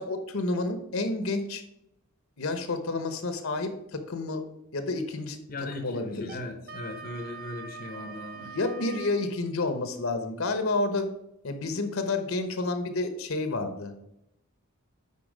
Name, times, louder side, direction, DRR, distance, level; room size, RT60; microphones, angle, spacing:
voice 1, 0.0-1.6 2.4-4.4 4.7-5.4 5.8-6.4 8.3-11.1 11.4-13.9, left 2 dB, 70° left, 8 dB, 1.0 m, -30 dB
voice 2, 5.5-8.5, left 2 dB, 45° left, 6 dB, 0.8 m, -38 dB
Wind instrument woodwind instrument, 6.2-9.3, right 5 dB, 50° right, 1.1 m, -43 dB
9.5 x 4.2 x 5.0 m, 0.81 s
head